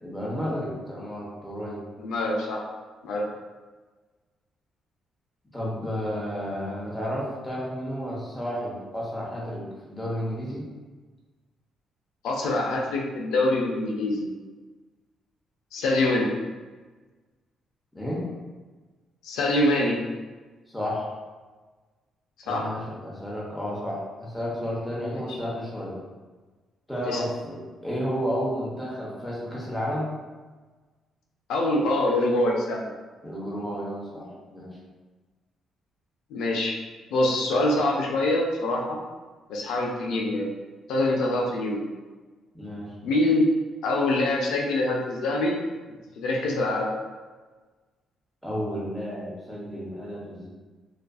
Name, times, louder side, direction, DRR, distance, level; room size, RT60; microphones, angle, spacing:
voice 1, 0.0-1.8 5.5-10.6 17.9-18.2 20.7-21.1 22.4-26.0 26.9-30.2 33.2-34.8 42.5-42.9 48.4-50.5, equal, 5° left, -5 dB, 0.7 m, -32 dB
voice 2, 2.0-2.6 3.0-3.2 12.2-14.3 15.7-16.3 19.2-20.0 22.5-22.7 25.1-25.2 27.0-27.2 31.5-32.9 36.3-36.8 37.1-39.0 39.5-40.5 40.9-41.8 43.0-43.5 43.8-45.6 46.2-46.9, left 1 dB, 85° left, -1 dB, 0.4 m, -24 dB
2.4 x 2.4 x 2.3 m, 1.3 s
cardioid pair, 90°, 0 cm